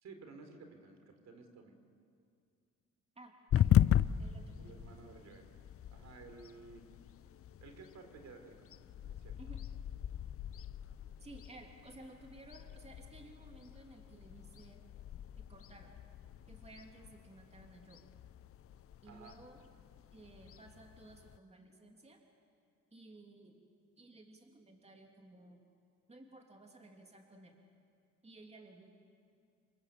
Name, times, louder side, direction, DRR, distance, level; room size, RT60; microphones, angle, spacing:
voice 1, 0.0-1.8 4.6-5.5 5.9-6.9 7.6-8.7 9.0-9.3 19.1-19.4, right 4 dB, 60° right, 6 dB, 3.8 m, -54 dB
voice 2, 3.2-4.6 9.4-9.6 11.2-14.8 15.4-15.9 16.5-18.1 19.0-19.6 20.1-22.3 22.9-23.6 24.0-25.6 26.1-27.6 28.2-28.9, right 2 dB, 20° right, 2 dB, 2.9 m, -56 dB
sound 1, 3.5-21.4, left 11 dB, 50° left, 0.6 m, -37 dB
27.0 x 23.0 x 7.8 m, 2.3 s
cardioid pair, 90°, 30 cm